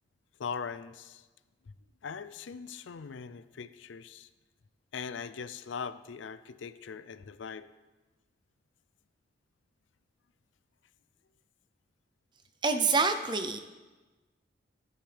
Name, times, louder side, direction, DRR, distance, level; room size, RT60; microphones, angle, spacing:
voice 1, 0.4-1.3 1.7-1.8 2.0-4.3 4.9-7.7, left 6 dB, 80° left, 14 dB, 0.4 m, -40 dB
voice 2, 12.6-13.6, right 4 dB, 25° right, 8 dB, 0.6 m, -26 dB
12.0 x 10.5 x 3.4 m, 1.2 s
head